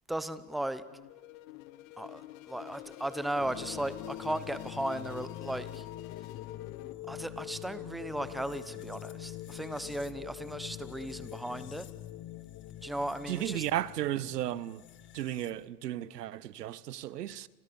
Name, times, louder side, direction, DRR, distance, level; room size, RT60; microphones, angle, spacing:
voice 1, 0.1-0.8 2.0-5.8 7.1-11.8 12.8-13.7, right 1 dB, ahead, 1.0 m, -36 dB
sound 1, 0.9-6.9, left 17 dB, 55° left, 1.2 m, -48 dB
sound 2, 3.4-15.7, left 13 dB, 25° left, 0.9 m, -44 dB
voice 2, 13.3-14.8 15.1-17.5, right 13 dB, 85° right, 1.2 m, -34 dB
29.0 x 28.5 x 7.1 m
hypercardioid pair, 130°, 47 cm